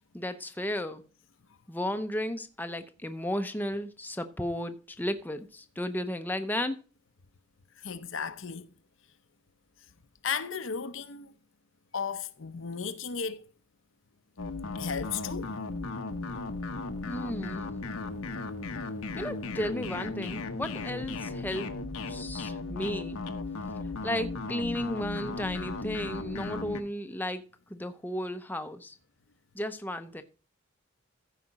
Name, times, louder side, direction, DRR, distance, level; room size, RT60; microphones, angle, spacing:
voice 1, 0.1-1.0 1.7-6.8 17.0-17.7 19.2-21.7 22.1-23.2 24.0-27.4 27.7-28.9 29.5-30.2, left 1 dB, 10° left, 0.6 m, -34 dB
voice 2, 7.8-8.7 10.2-11.3 11.9-13.4 14.8-15.5, left 6 dB, 65° left, 0.7 m, -34 dB
sound 1, 14.4-26.8, left 3 dB, 80° left, 1.0 m, -36 dB
14.5 x 5.0 x 4.1 m
head